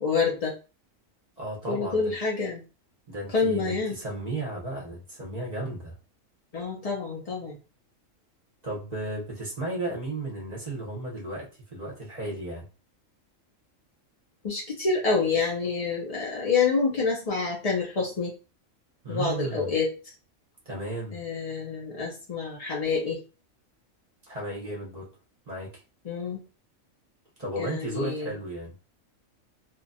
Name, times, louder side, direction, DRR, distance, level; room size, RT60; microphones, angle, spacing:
voice 1, 0.0-0.5 1.7-2.6 3.3-3.9 6.5-7.6 14.4-18.3 19.1-19.9 21.1-23.2 26.1-26.4 27.6-28.3, left 4 dB, 55° left, 0.4 m, -27 dB
voice 2, 1.4-2.1 3.1-5.9 8.6-12.7 19.0-19.7 20.7-21.2 24.2-25.1 25.5-25.7 27.4-28.7, right 2 dB, 35° right, 0.8 m, -34 dB
2.9 x 2.2 x 2.5 m
omnidirectional pair, 1.4 m